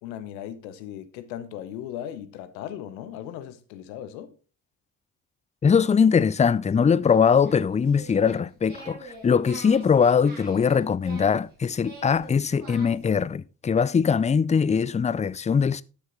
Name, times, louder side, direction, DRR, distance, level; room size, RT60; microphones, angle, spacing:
voice 1, 0.0-4.3, left 10 dB, 85° left, 0.9 m, -37 dB
voice 2, 5.6-15.8, left 6 dB, 15° left, 0.4 m, -21 dB
Singing, 6.9-13.1, right 2 dB, 85° right, 4.6 m, -45 dB
11.5 x 6.4 x 3.9 m
hypercardioid pair, 45°, 50 cm